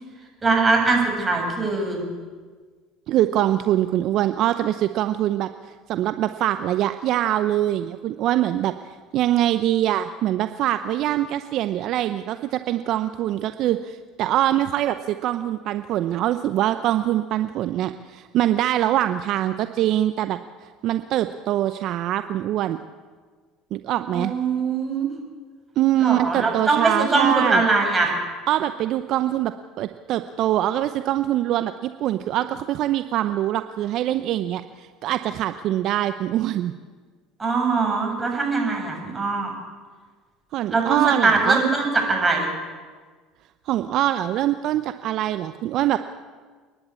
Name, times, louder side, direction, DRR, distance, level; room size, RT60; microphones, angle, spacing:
voice 1, 0.4-2.0 24.1-25.1 26.0-28.1 37.4-39.5 40.7-42.5, right 3 dB, 20° right, 1 dB, 7.3 m, -21 dB
voice 2, 3.1-5.5 5.9-22.8 23.7-24.3 25.8-27.6 28.5-29.5 29.8-36.7 40.5-41.6 43.7-46.0, right 13 dB, 60° right, 10 dB, 0.7 m, -23 dB
29.5 x 10.5 x 8.5 m, 1.5 s
hypercardioid pair, 80°, 0 cm